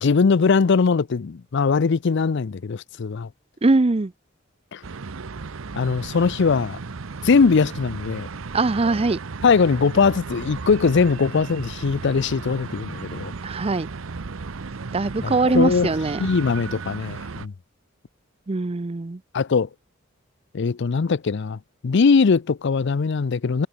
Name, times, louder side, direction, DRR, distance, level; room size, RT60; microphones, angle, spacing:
voice 1, 0.0-3.3 4.7-4.8 5.7-6.8 7.2-8.3 9.4-13.3 15.2-15.9 16.2-17.5 19.3-19.7 20.5-23.7, left 5 dB, 60° left, 0.5 m, -21 dB
voice 2, 3.6-4.1 8.5-9.2 13.4-13.9 14.9-16.3 18.5-19.2, right 3 dB, 30° right, 0.5 m, -21 dB
sound 1, 4.8-17.5, right 4 dB, 80° right, 0.8 m, -35 dB
head